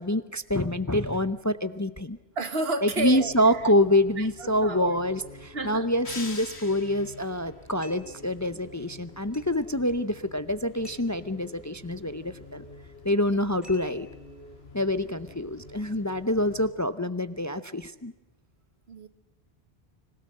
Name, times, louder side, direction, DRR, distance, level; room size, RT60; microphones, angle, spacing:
voice 1, 0.0-2.2 2.8-12.6 13.0-14.1 14.7-18.1, left 1 dB, 20° left, 13 dB, 0.6 m, -26 dB
voice 2, 2.4-3.6 4.2-5.0 5.5-5.9 8.5-8.6 13.3-13.4 18.9-19.1, right 2 dB, 70° right, 11 dB, 1.7 m, -31 dB
sound 1, 2.9-16.7, left 3 dB, 75° left, 3.9 m, -49 dB
sound 2, 6.0-7.3, left 3 dB, 90° left, 2.4 m, -40 dB
sound 3, 7.8-8.2 9.3-9.6 10.8-11.2 13.6-14.2, left 1 dB, ahead, 3.4 m, -51 dB
26.0 x 17.5 x 7.7 m, 1.1 s
omnidirectional pair, 1.1 m